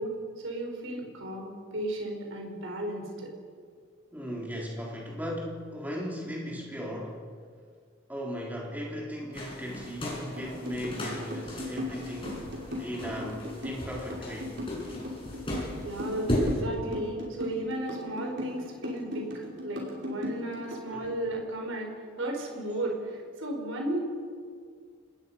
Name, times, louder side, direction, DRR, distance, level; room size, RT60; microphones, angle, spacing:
voice 1, 0.0-3.3 15.8-19.3 19.6-21.9 22.2-24.0, right 1 dB, 80° right, 1 dB, 4.8 m, -34 dB
voice 2, 4.1-7.3 8.1-14.6 20.9-21.2, equal, 10° right, -2 dB, 3.5 m, -37 dB
sound 1, 9.3-16.5, left 1 dB, 25° left, 6.4 m, -36 dB
sound 2, 10.4-20.9, left 1 dB, 55° right, 5.6 m, -37 dB
27.0 x 20.0 x 5.6 m, 2.1 s
head